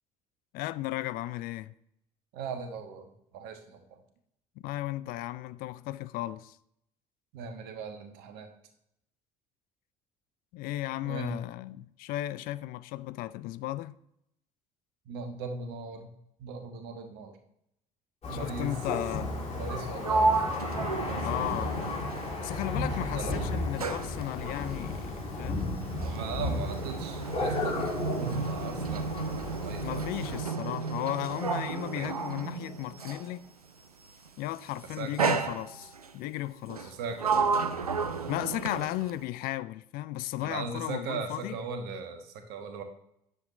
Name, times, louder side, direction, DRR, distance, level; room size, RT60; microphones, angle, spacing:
voice 1, 0.5-1.7 4.6-6.6 10.5-13.9 18.3-19.6 21.2-21.9 22.4-25.7 29.8-33.4 34.4-36.9 38.3-41.6, left 15 dB, 50° left, 0.4 m, -35 dB
voice 2, 2.3-4.0 7.3-8.5 11.0-11.4 15.0-16.1 16.4-17.4 18.3-18.8 19.5-20.8 21.0-21.5 23.0-23.4 26.1-30.1 31.9-32.1 34.8-35.1 36.8-37.6 40.4-42.8, right 5 dB, 60° right, 1.3 m, -39 dB
Thunder, 18.2-30.4, left 2 dB, 35° left, 3.1 m, -34 dB
Sliding door, 19.6-22.9 23.2-33.4 34.3-34.6 35.2-36.1 36.7-39.2, right 4 dB, 85° right, 0.4 m, -32 dB
9.9 x 7.1 x 3.1 m
figure-of-eight pair, 55°, 19 cm